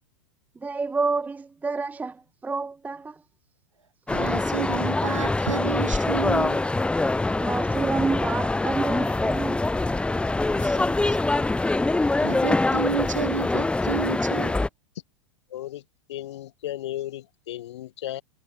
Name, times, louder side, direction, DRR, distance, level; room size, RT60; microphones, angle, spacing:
voice 1, 0.6-3.2 7.4-9.8, right 4 dB, 10° right, 0.6 m, -29 dB
sound 1, 4.1-14.7, left 2 dB, 5° left, 1.6 m, -24 dB
voice 2, 4.1-6.6 10.6-11.3 12.2-14.6, right 5 dB, 80° right, 1.9 m, -31 dB
voice 3, 15.5-15.8 16.1-18.2, left 13 dB, 60° left, 1.1 m, -35 dB
figure-of-eight pair, 95°, 16 cm